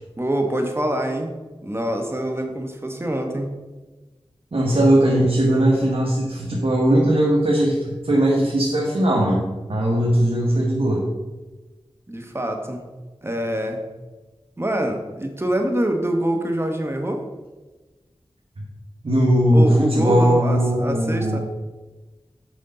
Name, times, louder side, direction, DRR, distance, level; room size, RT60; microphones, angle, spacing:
voice 1, 0.2-1.4 1.6-3.5 12.1-12.8 13.2-13.8 14.6-17.3 19.5-21.4, right 1 dB, 25° right, 4 dB, 1.1 m, -25 dB
voice 2, 4.5-9.4 9.7-11.1 19.0-21.4, right 1 dB, 65° right, -4 dB, 1.1 m, -19 dB
6.4 x 5.3 x 3.8 m, 1.2 s
wide cardioid pair, 40°, 10 cm